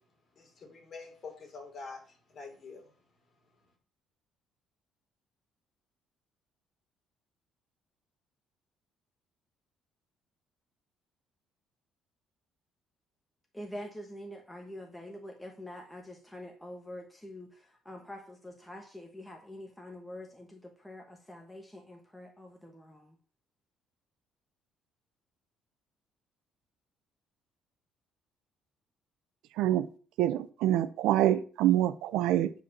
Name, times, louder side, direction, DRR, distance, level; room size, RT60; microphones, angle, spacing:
voice 1, 0.4-2.0 2.3-2.8, left 4 dB, 35° left, 3.4 m, -45 dB
voice 2, 13.5-17.5 17.8-23.0, left 1 dB, 5° left, 1.2 m, -45 dB
voice 3, 29.6-29.9 30.2-32.5, right 12 dB, 85° right, 0.7 m, -26 dB
9.6 x 5.2 x 7.3 m
cardioid pair, 155°, 0 cm